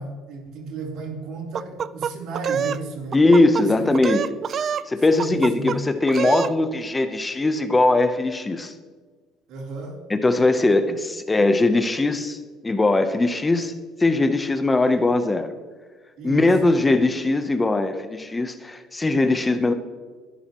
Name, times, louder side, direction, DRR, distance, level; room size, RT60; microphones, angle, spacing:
voice 1, 0.0-3.2 3.6-3.9 5.1-5.8 9.5-10.0 16.2-16.6, right 3 dB, 70° right, 0 dB, 3.6 m, -33 dB
sound 1, 1.5-2.8 3.1-3.6 3.9-4.9 5.2-5.8 6.1-6.5, right 8 dB, 45° right, 0.4 m, -26 dB
voice 2, 3.1-4.4 4.9-8.7 10.1-13.7 14.0-15.5 16.2-19.7, left 2 dB, 15° left, 9 dB, 0.9 m, -20 dB
21.0 x 11.0 x 3.1 m, 1.4 s
cardioid pair, 105°, 0 cm